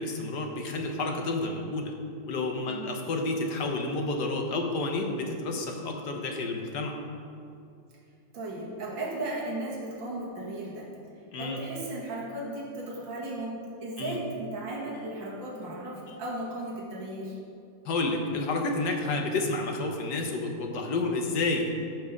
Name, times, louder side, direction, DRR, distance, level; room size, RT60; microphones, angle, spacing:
voice 1, 0.0-1.9 2.3-6.9 11.3-11.6 14.0-14.2 17.8-21.7, left 2 dB, 60° left, 2 dB, 1.6 m, -30 dB
voice 2, 8.3-10.9 11.4-17.4, right 1 dB, 70° right, -5 dB, 2.7 m, -36 dB
13.5 x 6.2 x 5.2 m, 2.5 s
omnidirectional pair, 2.2 m